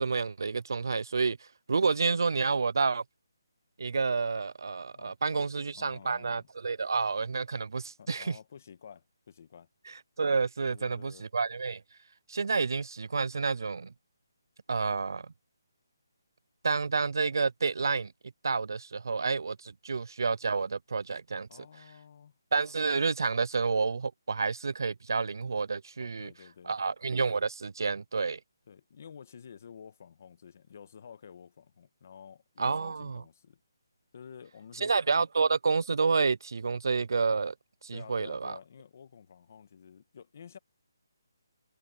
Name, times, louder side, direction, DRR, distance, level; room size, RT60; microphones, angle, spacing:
voice 1, 0.0-3.0 3.8-8.4 9.9-11.8 12.3-13.9 14.7-15.3 16.6-18.1 18.4-21.5 22.5-26.3 26.6-28.4 32.6-33.2 34.8-37.5 37.8-38.6, right 4 dB, 65° right, 0.4 m, -29 dB
voice 2, 4.9-5.5 5.7-6.5 8.0-9.7 10.6-11.2 21.5-22.4 25.9-26.8 28.7-33.6 34.1-34.9 37.9-40.6, left 7 dB, 35° left, 1.5 m, -51 dB
hypercardioid pair, 175°, 2 cm